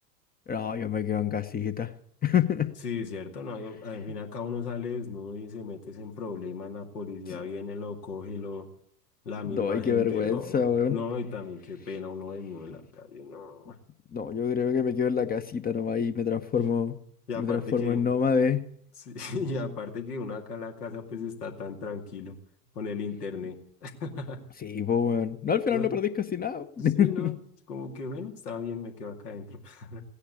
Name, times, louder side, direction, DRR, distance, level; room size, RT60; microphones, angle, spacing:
voice 1, 0.5-1.9 2.2-2.7 9.4-11.0 14.1-17.0 17.4-18.7 24.6-27.3, left 7 dB, 20° left, 11 dB, 0.9 m, -26 dB
voice 2, 2.8-8.7 9.2-13.8 16.6-16.7 17.3-18.0 19.1-22.4 22.7-23.6 23.8-24.4 25.7-25.9 26.8-27.4 27.7-30.0, left 4 dB, 70° left, 3 dB, 2.6 m, -36 dB
16.0 x 10.0 x 8.4 m, 0.66 s
figure-of-eight pair, 85°, 48 cm